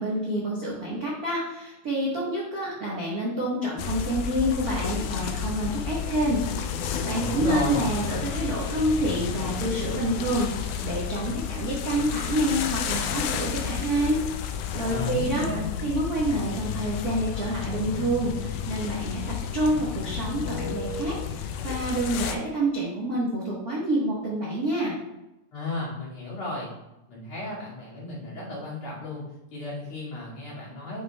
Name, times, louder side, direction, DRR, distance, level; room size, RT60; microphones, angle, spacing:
voice 1, 0.0-6.4 6.8-14.2 14.7-15.5 15.8-19.2 19.5-25.0, right 1 dB, 55° right, -6 dB, 1.0 m, -28 dB
sound 1, 3.8-22.4, left 8 dB, 85° left, 2.1 m, -31 dB
voice 2, 7.1-7.9 14.9-15.7 25.5-26.7 27.1-29.2 29.5-31.0, left 2 dB, 55° left, -8 dB, 3.3 m, -33 dB
9.2 x 5.4 x 2.2 m, 0.95 s
omnidirectional pair, 3.6 m